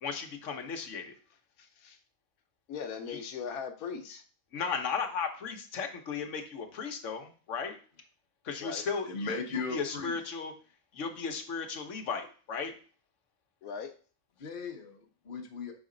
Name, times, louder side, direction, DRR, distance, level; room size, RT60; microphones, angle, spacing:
voice 1, 0.0-1.1 3.1-3.2 4.5-7.8 8.4-10.5 10.9-12.7, left 5 dB, 60° left, 5 dB, 1.2 m, -35 dB
voice 2, 2.7-4.2 8.6-8.8 13.6-13.9, left 6 dB, 90° left, 6 dB, 1.2 m, -39 dB
voice 3, 9.1-10.2 14.4-15.7, left 4 dB, 40° left, 2 dB, 1.0 m, -37 dB
6.0 x 4.1 x 3.8 m, 0.40 s
omnidirectional pair, 1.5 m